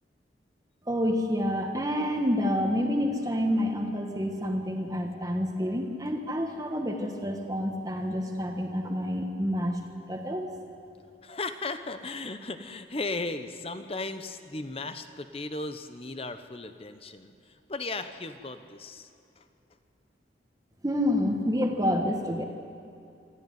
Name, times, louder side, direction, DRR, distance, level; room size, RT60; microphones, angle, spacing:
voice 1, 0.9-9.8 10.1-10.5 20.8-22.4, equal, 20° right, 2 dB, 1.5 m, -28 dB
voice 2, 11.2-17.3 17.7-19.1 19.4-19.5, left 3 dB, 30° left, 9 dB, 0.9 m, -36 dB
25.0 x 13.5 x 9.4 m, 2.6 s
head